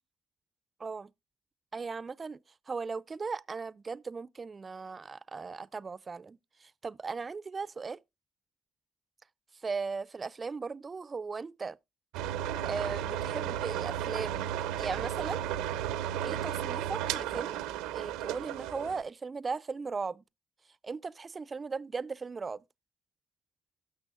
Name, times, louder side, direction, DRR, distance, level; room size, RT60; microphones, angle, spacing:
voice 1, 0.8-1.1 1.7-2.4 2.7-8.0 9.6-11.8 12.6-14.5 14.8-15.4 16.2-17.6 17.9-20.2 20.8-22.6, right 4 dB, 35° right, 0.4 m, -37 dB
sound 1, 12.1-19.0, right 11 dB, 85° right, 0.5 m, -34 dB
17.5 x 6.1 x 2.4 m
supercardioid pair, 60°, 0 cm